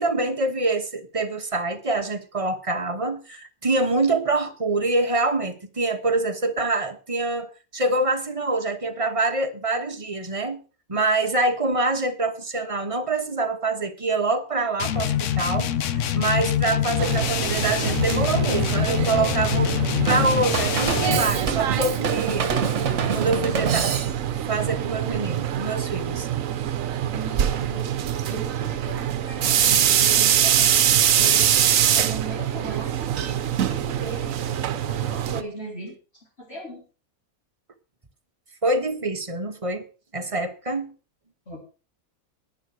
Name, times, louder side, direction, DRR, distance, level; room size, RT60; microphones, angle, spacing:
voice 1, 0.0-7.5 7.7-10.6 10.9-15.7 16.1-19.8 20.0-22.5 23.1-23.9 24.5-26.3 38.6-39.9 40.1-40.9, right 2 dB, 25° right, 1.3 m, -25 dB
sound 1, 14.8-21.3, left 10 dB, 65° left, 1.0 m, -25 dB
sound 2, 17.0-35.4, right 10 dB, 70° right, 1.2 m, -24 dB
Drum kit / Drum, 20.1-24.4, right 6 dB, 55° right, 1.5 m, -26 dB
voice 2, 27.1-28.0 28.2-30.8 31.1-36.0 36.4-36.9 41.5-41.6, right 1 dB, 45° left, 4.1 m, -38 dB
11.0 x 9.7 x 5.9 m
omnidirectional pair, 1.5 m